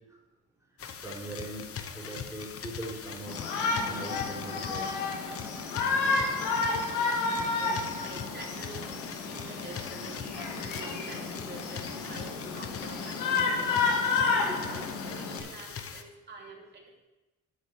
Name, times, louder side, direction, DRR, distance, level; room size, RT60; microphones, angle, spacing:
sound 1, 0.8-16.0, left 7 dB, 50° left, 1.0 m, -42 dB
voice 1, 1.0-3.6 3.9-4.9 13.8-13.9 14.5-14.6, right 1 dB, 10° right, -5 dB, 4.2 m, -41 dB
Shout, 3.3-15.4, left 4 dB, 85° left, 1.9 m, -31 dB
voice 2, 6.2-8.9 9.2-13.9 14.3-17.0, right 3 dB, 35° right, -2 dB, 3.2 m, -48 dB
7.7 x 6.9 x 8.4 m, 1.1 s
cardioid pair, 90°, 30 cm